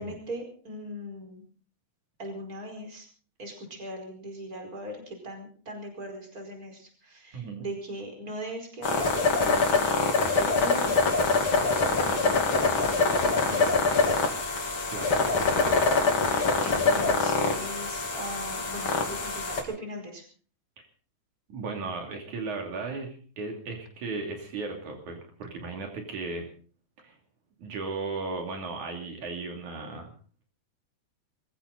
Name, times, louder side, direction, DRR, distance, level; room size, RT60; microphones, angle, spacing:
voice 1, 0.0-1.4 2.2-3.1 3.4-11.5 12.2-14.4 16.1-20.2, right 1 dB, 30° right, 3 dB, 5.2 m, -40 dB
voice 2, 7.3-7.7 12.0-12.2 14.9-15.1 20.8-20.9 21.5-26.5 27.0-27.1 27.6-30.1, right 3 dB, 80° right, 2 dB, 4.2 m, -36 dB
sound 1, 8.8-19.6, left 4 dB, 45° left, 3.2 m, -24 dB
22.5 x 15.5 x 4.1 m, 0.42 s
omnidirectional pair, 3.4 m